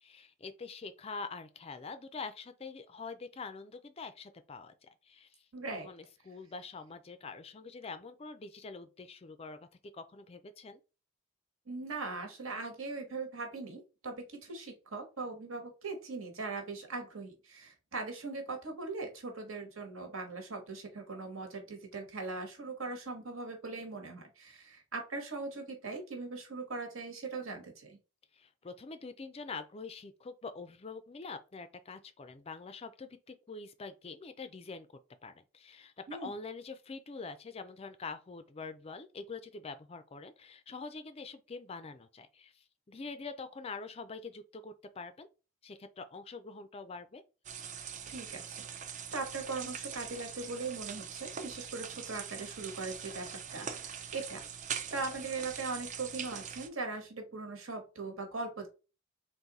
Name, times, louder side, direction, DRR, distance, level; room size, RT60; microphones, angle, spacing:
voice 1, 0.0-5.4 5.8-9.7 9.9-10.8 28.3-34.9 35.2-45.3 45.6-47.2, left 4 dB, 30° left, 0.4 m, -45 dB
voice 2, 5.5-5.9 11.7-28.0 36.1-36.3 48.1-48.6 49.1-54.4 54.9-58.7, right 3 dB, 70° right, 1.4 m, -40 dB
sound 1, 47.4-56.7, right 7 dB, 35° right, 0.4 m, -42 dB
3.9 x 2.6 x 4.0 m
head